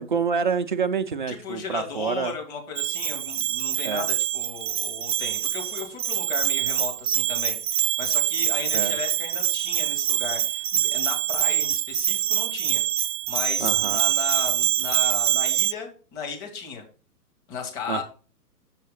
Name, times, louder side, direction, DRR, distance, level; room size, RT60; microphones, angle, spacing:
voice 1, 0.0-2.3 3.8-4.1 8.7-9.0 13.6-14.0 17.9-18.0, right 6 dB, 35° right, 0.4 m, -27 dB
voice 2, 1.3-12.8 13.3-16.8 17.5-18.0, left 6 dB, 30° left, 2.2 m, -35 dB
Bell, 2.8-15.7, right 11 dB, 85° right, 0.6 m, -25 dB
7.2 x 5.7 x 4.0 m
hypercardioid pair, 135°, 47 cm